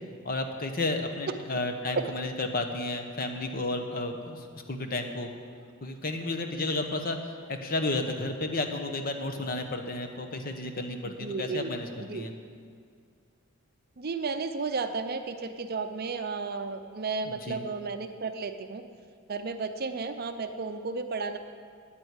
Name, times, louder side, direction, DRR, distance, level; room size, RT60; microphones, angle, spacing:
voice 1, 0.2-5.3 5.8-7.2 7.5-12.3 17.2-17.6, left 2 dB, 45° left, 5 dB, 0.9 m, -32 dB
voice 2, 11.0-11.7 12.0-12.3 14.0-18.8 19.3-21.4, right 4 dB, 45° right, 8 dB, 0.6 m, -33 dB
9.0 x 8.8 x 8.3 m, 2.2 s
head